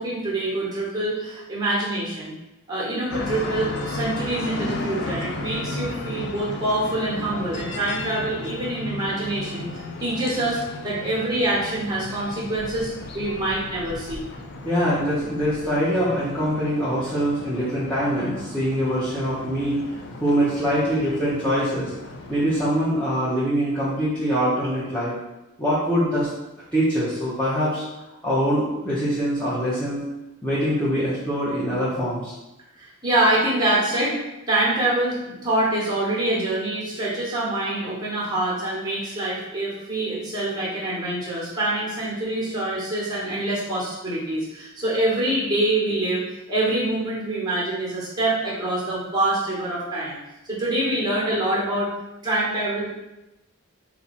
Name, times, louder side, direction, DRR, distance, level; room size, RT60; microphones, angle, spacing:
voice 1, 0.0-2.3 2.7-14.2 32.8-34.1 34.5-50.2 50.5-51.9 52.2-52.9, right 1 dB, 20° right, -6 dB, 1.2 m, -25 dB
sound 1, 3.1-22.9, left 2 dB, 55° left, 0.4 m, -35 dB
voice 2, 14.6-19.8 20.2-21.9 22.3-25.1 25.6-26.3 26.7-27.8 28.2-30.0 30.4-32.3, equal, 5° left, -11 dB, 0.8 m, -23 dB
4.2 x 2.4 x 4.1 m, 0.99 s
head